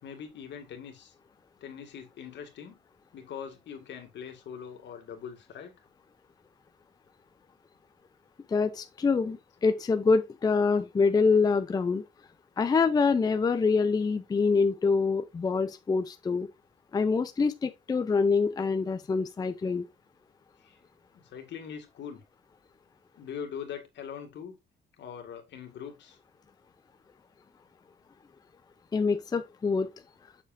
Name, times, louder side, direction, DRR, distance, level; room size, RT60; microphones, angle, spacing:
voice 1, 0.0-1.1 1.6-2.8 3.1-5.7 20.6-20.8 21.1-22.2 23.2-24.6 25.0-26.2, left 7 dB, 70° left, 2.1 m, -42 dB
voice 2, 8.5-12.0 12.6-16.5 16.9-19.9 28.9-29.9, left 4 dB, 20° left, 0.5 m, -25 dB
7.5 x 6.5 x 2.6 m
cardioid pair, 165°, 19 cm